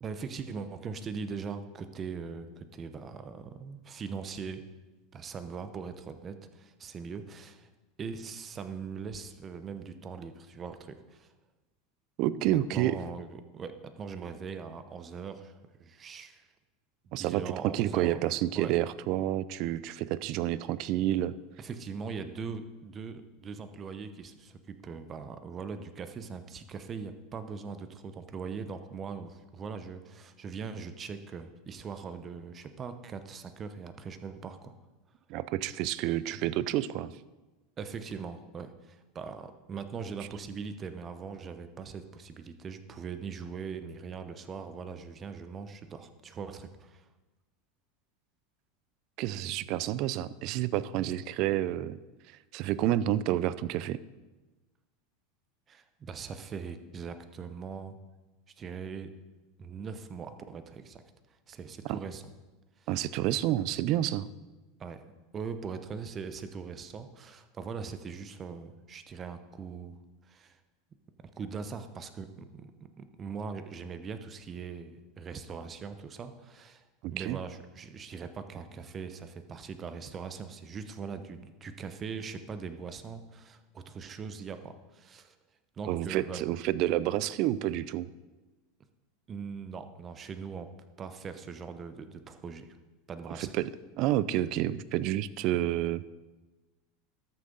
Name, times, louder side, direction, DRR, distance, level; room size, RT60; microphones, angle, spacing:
voice 1, 0.0-4.6 5.1-7.7 8.0-11.3 12.4-16.5 17.2-18.2 18.5-18.7 21.6-34.7 37.8-47.1 55.7-58.0 58.6-59.1 59.6-61.0 61.5-62.2 62.8-62.9 64.8-65.0 65.3-69.9 70.3-70.6 71.2-76.8 77.1-85.3 85.8-86.4 89.3-90.7 91.0-92.8 93.1-93.5, right 5 dB, 30° right, 9 dB, 0.8 m, -41 dB
voice 2, 12.2-13.0 17.1-21.4 35.3-37.2 49.2-52.0 52.5-54.0 61.8-62.0 62.9-64.3 77.0-77.4 85.9-88.1 93.4-93.7 94.0-96.0, right 13 dB, 55° right, 17 dB, 0.4 m, -29 dB
13.0 x 6.5 x 3.9 m, 1.2 s
supercardioid pair, 115°, 0 cm